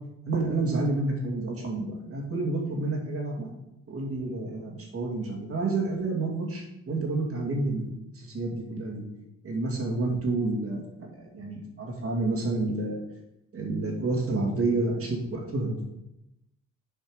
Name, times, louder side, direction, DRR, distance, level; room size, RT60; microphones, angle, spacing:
voice 1, 0.3-3.5 3.9-9.0 9.4-13.0 13.5-15.8, right 2 dB, 50° right, 0 dB, 2.6 m, -29 dB
7.9 x 5.4 x 5.0 m, 0.88 s
cardioid pair, 90°, 30 cm